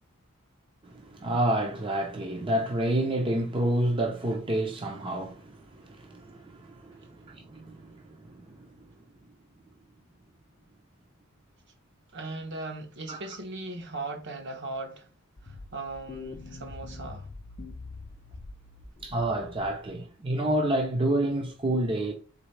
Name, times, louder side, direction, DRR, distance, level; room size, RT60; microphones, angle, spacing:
voice 1, 0.9-8.6 13.1-13.2 19.0-22.1, right 1 dB, 25° right, 0.5 m, -29 dB
voice 2, 12.1-15.1 15.4-17.3, right 2 dB, 55° right, 0.9 m, -38 dB
sound 1, 15.4-20.0, left 3 dB, 35° left, 0.4 m, -44 dB
4.0 x 3.3 x 3.1 m
head